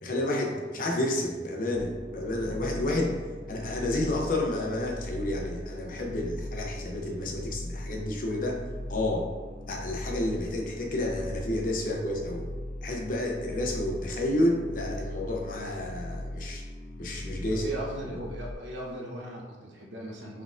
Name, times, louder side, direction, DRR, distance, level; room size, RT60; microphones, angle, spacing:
voice 1, 0.0-3.2 3.5-8.6 8.9-9.3 9.7-12.5 12.8-16.6 17.0-17.7, left 1 dB, 50° left, 0 dB, 0.6 m, -30 dB
sound 1, 1.7-18.5, left 1 dB, 10° left, 0.3 m, -39 dB
voice 2, 17.5-20.4, right 1 dB, 90° right, -2 dB, 0.9 m, -38 dB
4.4 x 3.5 x 2.5 m, 1.4 s
head